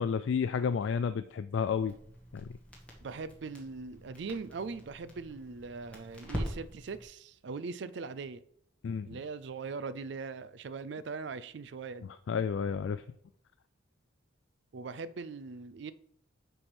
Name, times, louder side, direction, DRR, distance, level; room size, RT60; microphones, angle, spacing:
voice 1, 0.0-2.0 2.3-2.5 8.8-9.2 12.3-13.0, left 6 dB, 65° left, 0.3 m, -31 dB
Crackle, 1.8-7.0, equal, 5° left, 1.6 m, -43 dB
voice 2, 3.0-8.4 9.0-12.1 14.7-15.9, right 4 dB, 60° right, 0.4 m, -40 dB
9.8 x 3.4 x 6.1 m
head